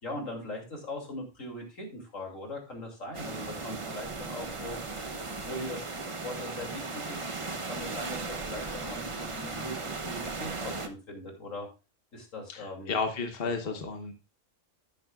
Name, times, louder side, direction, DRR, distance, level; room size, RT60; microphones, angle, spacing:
voice 1, 0.0-9.8 10.0-11.7 12.1-12.9 13.6-13.8, left 1 dB, 80° left, 1 dB, 3.0 m, -40 dB
sound 1, 3.1-10.9, right 3 dB, 30° right, 0.8 m, -37 dB
voice 2, 12.5-14.1, left 4 dB, 50° left, 5 dB, 1.3 m, -32 dB
11.0 x 10.0 x 2.4 m, 0.30 s
omnidirectional pair, 1.3 m